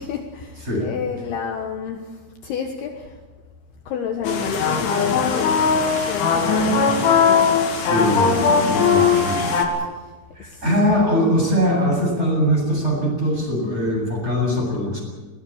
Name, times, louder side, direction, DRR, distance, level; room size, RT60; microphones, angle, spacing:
voice 1, 0.0-3.2 3.9-7.0 7.3-7.7 8.6-9.2 9.8-9.9 10.4-10.6, left 6 dB, 65° left, 3 dB, 3.1 m, -30 dB
voice 2, 0.6-1.2 7.7-9.5 10.3-15.0, equal, 15° right, -1 dB, 8.1 m, -22 dB
sound 1, 4.2-9.7, left 5 dB, 85° left, 5.0 m, -19 dB
21.0 x 18.5 x 8.7 m, 1.3 s
omnidirectional pair, 5.4 m